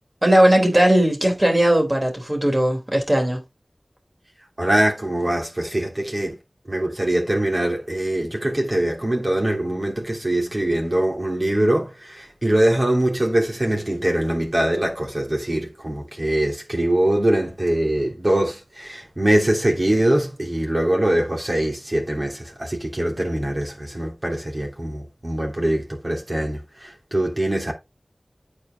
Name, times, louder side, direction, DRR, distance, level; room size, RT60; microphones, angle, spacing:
voice 1, 0.2-3.4, right 1 dB, 30° right, 3.3 m, -18 dB
voice 2, 4.6-6.4 6.7-27.7, right 1 dB, 45° right, 2.9 m, -23 dB
8.6 x 4.9 x 3.7 m
wide cardioid pair, 45°, 0 cm